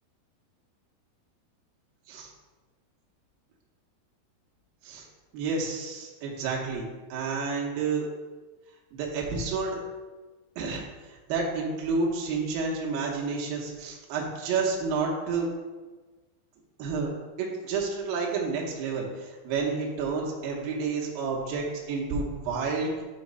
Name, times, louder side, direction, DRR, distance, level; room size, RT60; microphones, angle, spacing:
voice 1, 5.3-8.1 8.9-9.8 10.6-15.5 16.8-17.1 17.4-23.0, right 4 dB, 75° right, -2 dB, 2.2 m, -30 dB
7.0 x 2.9 x 5.2 m, 1.3 s
omnidirectional pair, 4.9 m